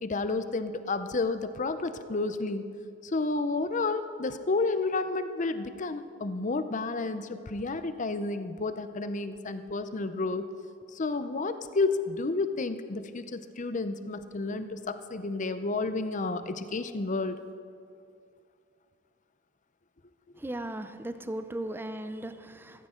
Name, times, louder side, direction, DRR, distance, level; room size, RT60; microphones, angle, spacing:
voice 1, 0.0-2.7 3.0-10.5 10.9-17.4, left 3 dB, 40° left, 10 dB, 0.6 m, -31 dB
voice 2, 20.4-22.9, right 1 dB, 10° right, 10 dB, 0.5 m, -37 dB
15.0 x 15.0 x 3.8 m, 2.3 s
head